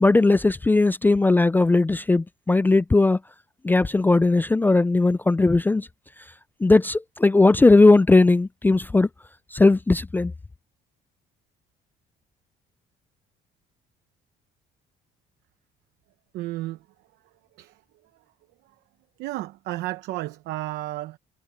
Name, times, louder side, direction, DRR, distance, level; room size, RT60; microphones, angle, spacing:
voice 1, 0.0-3.2 3.6-5.9 6.6-9.1 9.5-10.3, left 3 dB, 10° left, 0.3 m, -18 dB
voice 2, 16.3-16.9 17.1-18.2 18.6-18.8 19.2-21.2, right 17 dB, 85° right, 0.9 m, -34 dB
cardioid pair, 110°, 17 cm